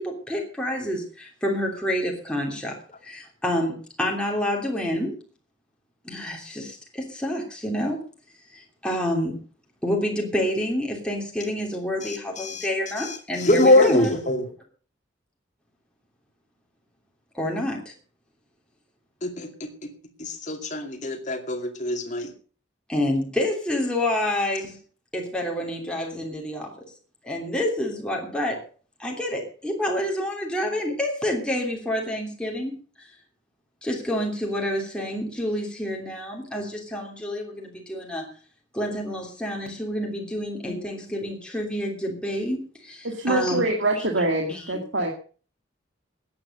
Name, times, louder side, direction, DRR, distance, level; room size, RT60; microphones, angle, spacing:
voice 1, 0.0-5.1 6.0-8.0 8.5-9.4 9.8-14.1 17.3-17.9 22.9-24.8 25.1-26.7 27.2-28.6 29.0-33.1 33.8-38.3 38.7-43.6 43.9-44.1 44.5-44.7, left 1 dB, 5° left, -1 dB, 3.1 m, -28 dB
voice 2, 12.0-12.7 13.0-13.1 13.4-14.4 19.2-19.7 20.2-22.3 40.6-40.8, left 2 dB, 35° left, 6 dB, 2.4 m, -23 dB
voice 3, 43.0-45.1, right 2 dB, 70° right, 3 dB, 2.1 m, -24 dB
13.5 x 9.7 x 6.6 m, 0.40 s
head